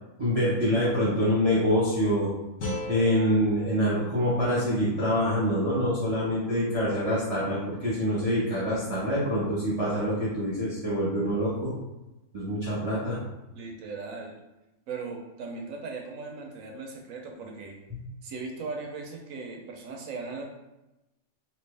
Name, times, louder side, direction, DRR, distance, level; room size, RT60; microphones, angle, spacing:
voice 1, 0.2-2.3 2.9-11.7 12.3-13.2 17.9-18.0, equal, 30° right, -9 dB, 0.8 m, -25 dB
sound 1, 2.6-5.7, left 1 dB, 65° left, 1.3 m, -39 dB
voice 2, 13.5-14.4 14.9-17.8 18.2-20.4, right 4 dB, 70° right, 1 dB, 1.0 m, -38 dB
3.3 x 2.8 x 3.2 m, 0.99 s
omnidirectional pair, 1.5 m